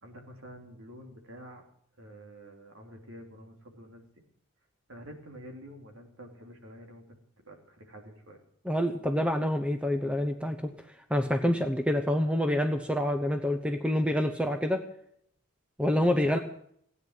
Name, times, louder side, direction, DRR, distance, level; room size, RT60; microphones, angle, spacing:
voice 1, 0.0-1.6 2.0-4.1 4.9-7.2 7.4-8.4 16.2-16.4, equal, 65° right, 3 dB, 3.1 m, -48 dB
voice 2, 8.6-10.7 11.1-14.9 15.8-16.4, left 1 dB, 5° right, 7 dB, 0.9 m, -27 dB
17.0 x 9.6 x 7.5 m, 0.67 s
head